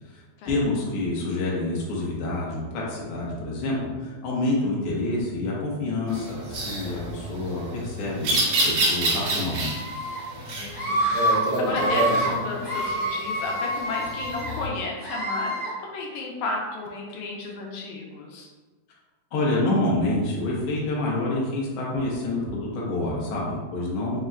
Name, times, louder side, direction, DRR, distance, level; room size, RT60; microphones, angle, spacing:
voice 1, 0.1-9.7 19.3-24.2, left 2 dB, 65° left, -4 dB, 1.4 m, -27 dB
sound 1, 6.1-14.7, right 1 dB, 75° right, 1.3 m, -28 dB
Screaming, 9.6-10.2 10.7-11.4 11.7-12.3 12.6-14.5 15.0-15.7, right 1 dB, 35° left, 0.8 m, -27 dB
voice 2, 10.5-11.2 11.6-18.5, left 3 dB, 85° left, -1 dB, 2.0 m, -33 dB
5.4 x 2.1 x 3.6 m, 1.3 s
omnidirectional pair, 3.5 m